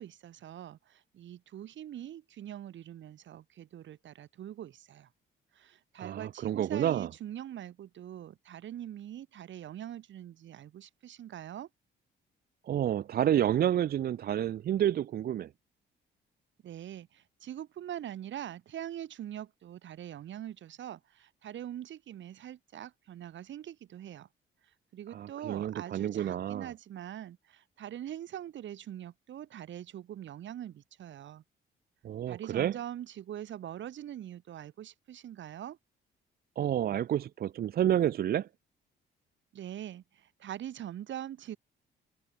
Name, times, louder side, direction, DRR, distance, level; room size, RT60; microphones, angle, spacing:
voice 1, 0.0-5.1 5.5-11.7 16.6-24.3 24.6-31.4 32.3-35.8 39.5-41.6, right 11 dB, 70° right, 3.4 m, -43 dB
voice 2, 6.0-7.1 12.7-15.5 25.1-26.7 32.0-32.8 36.6-38.5, right 11 dB, 50° right, 0.5 m, -29 dB
cardioid pair, 90°, 20 cm